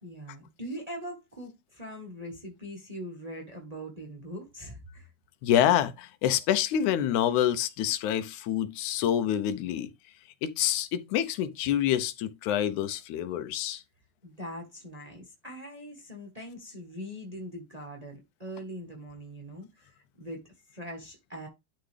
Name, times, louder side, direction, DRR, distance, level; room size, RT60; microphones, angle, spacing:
voice 1, 0.0-5.1 14.2-21.5, equal, 80° right, 0.3 m, -42 dB
voice 2, 5.4-9.9 10.4-13.8, left 10 dB, 90° left, 2.2 m, -27 dB
11.5 x 3.8 x 3.3 m
omnidirectional pair, 3.3 m